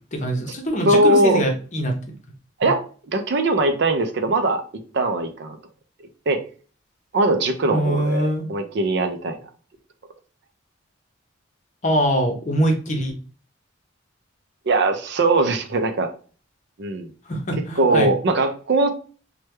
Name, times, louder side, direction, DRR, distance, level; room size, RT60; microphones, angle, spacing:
voice 1, 0.1-1.9 7.7-8.4 11.8-13.1 17.3-18.1, right 1 dB, 35° left, 3 dB, 0.7 m, -23 dB
voice 2, 0.9-1.4 2.6-2.8 3.1-4.6 4.9-5.6 6.3-6.4 7.1-9.4 14.7-16.1 16.8-17.1 17.8-18.9, right 2 dB, 55° right, 7 dB, 0.4 m, -20 dB
3.1 x 2.2 x 3.2 m, 0.39 s
head